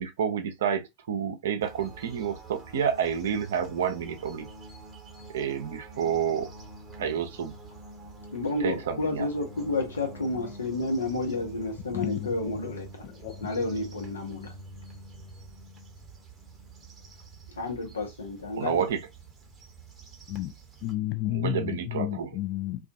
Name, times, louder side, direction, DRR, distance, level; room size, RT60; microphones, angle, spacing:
voice 1, 0.0-4.5 5.3-6.5 7.0-7.5 8.6-9.3 18.5-19.0 21.3-22.4, right 8 dB, 65° right, 0.5 m, -29 dB
sound 1, 1.6-20.9, right 2 dB, 15° right, 0.9 m, -46 dB
voice 2, 8.3-13.0 13.4-14.6 17.5-18.8, left 2 dB, 75° left, 0.8 m, -31 dB
voice 3, 11.9-12.3 13.0-13.5 20.3-20.5 20.8-22.8, left 15 dB, 45° left, 0.5 m, -31 dB
2.3 x 2.3 x 2.6 m
figure-of-eight pair, 95°, 0 cm